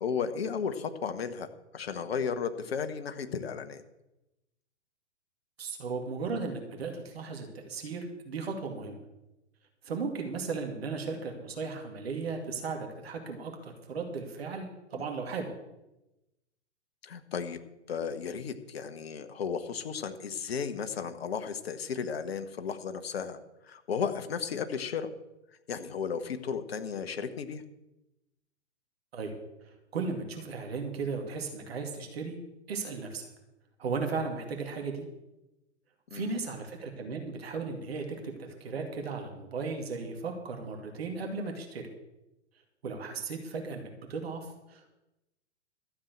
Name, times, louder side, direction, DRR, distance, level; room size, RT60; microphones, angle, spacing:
voice 1, 0.0-1.5 1.7-3.8 15.0-15.1 17.0-17.6 17.9-23.4 23.6-25.1 25.7-27.6 36.1-36.4, left 6 dB, 60° left, 10 dB, 1.3 m, -34 dB
voice 2, 5.6-9.0 9.8-15.5 29.1-29.3 29.6-32.4 32.7-33.3 33.8-35.0 36.1-41.9 42.8-44.9, right 4 dB, 60° right, 3 dB, 2.4 m, -36 dB
13.0 x 7.4 x 8.0 m, 0.95 s
figure-of-eight pair, 110°, 35 cm